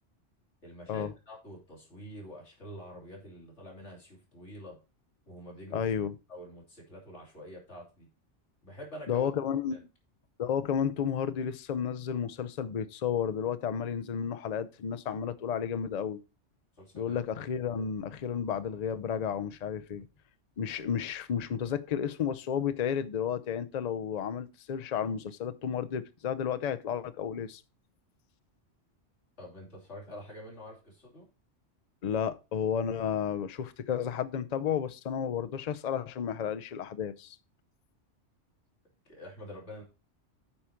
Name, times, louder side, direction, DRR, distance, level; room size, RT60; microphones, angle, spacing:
voice 1, 0.6-4.8 5.3-5.8 6.3-8.1 8.6-9.3 9.7-9.8 16.8-17.2 29.4-31.2 39.1-39.8, equal, 75° left, 3.3 m, -46 dB
voice 2, 5.7-6.1 9.1-9.8 10.4-16.2 16.9-20.1 20.6-27.6 32.0-37.4, left 8 dB, 45° left, 0.6 m, -32 dB
8.6 x 5.0 x 4.4 m
omnidirectional pair, 1.2 m